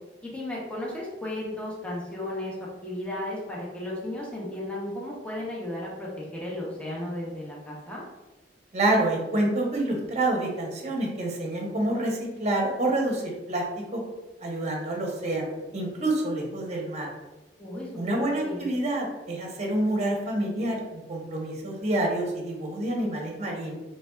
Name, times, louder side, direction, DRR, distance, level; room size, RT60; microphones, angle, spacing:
voice 1, 0.2-2.5 2.8-8.0 17.6-18.7, left 1 dB, 5° left, -5 dB, 0.7 m, -34 dB
voice 2, 8.7-14.0 14.4-17.1 18.0-23.8, right 1 dB, 40° right, 0 dB, 0.8 m, -28 dB
4.1 x 3.2 x 2.3 m, 1.1 s
head